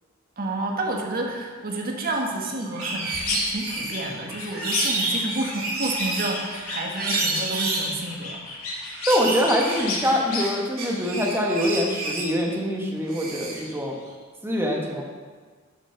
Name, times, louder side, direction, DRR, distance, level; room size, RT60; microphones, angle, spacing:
voice 1, 0.4-8.4, right 2 dB, 45° right, 1 dB, 1.6 m, -30 dB
sound 1, 2.1-2.2 2.4-4.2 4.5-6.6 7.0-7.9 8.6-10.5 10.8-12.3 13.1-13.7, right 3 dB, 80° right, 3.0 m, -30 dB
sound 2, 2.8-3.4 3.7-5.1 5.4-7.3 7.7-10.4, left 4 dB, 90° left, 2.7 m, -31 dB
voice 2, 9.1-14.0 14.4-15.0, equal, 10° right, -1 dB, 1.6 m, -24 dB
11.5 x 7.0 x 6.0 m, 1.5 s
head